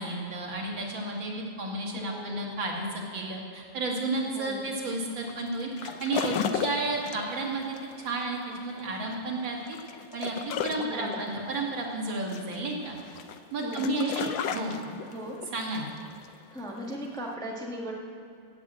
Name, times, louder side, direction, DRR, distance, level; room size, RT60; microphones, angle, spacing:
voice 1, 0.0-9.8 10.1-13.0 13.5-14.7 15.5-15.9, right 2 dB, 65° right, -1 dB, 2.8 m, -32 dB
voice 2, 1.9-2.4 4.3-4.7 10.8-11.3 13.6-14.3 15.1-15.4 16.5-17.9, equal, ahead, -2 dB, 1.3 m, -37 dB
sound 1, 4.2-17.3, left 7 dB, 70° left, 1.4 m, -36 dB
17.5 x 7.6 x 7.5 m, 2.5 s
omnidirectional pair, 2.3 m